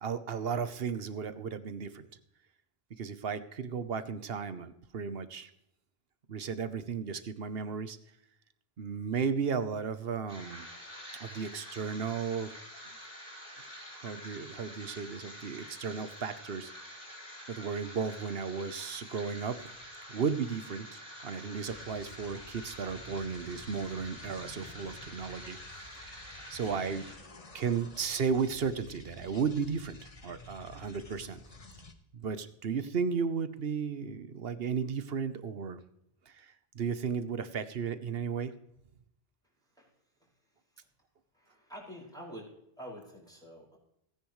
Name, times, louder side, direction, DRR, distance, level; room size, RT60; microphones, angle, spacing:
voice 1, 0.0-2.1 3.0-5.5 6.3-8.0 8.8-10.7 11.2-12.5 13.9-16.7 17.5-19.7 20.1-26.2 26.5-27.1 27.5-31.4 32.1-35.8 36.3-38.5, right 6 dB, 70° right, 12 dB, 1.1 m, -34 dB
sound 1, 10.3-27.1, equal, 65° left, 4.3 m, -47 dB
sound 2, 21.7-31.9, left 3 dB, 35° left, 1.2 m, -51 dB
voice 2, 39.6-39.9 40.2-40.9 41.3-43.8, equal, 5° left, -5 dB, 5.6 m, -48 dB
17.5 x 10.0 x 3.1 m, 0.77 s
omnidirectional pair, 1.1 m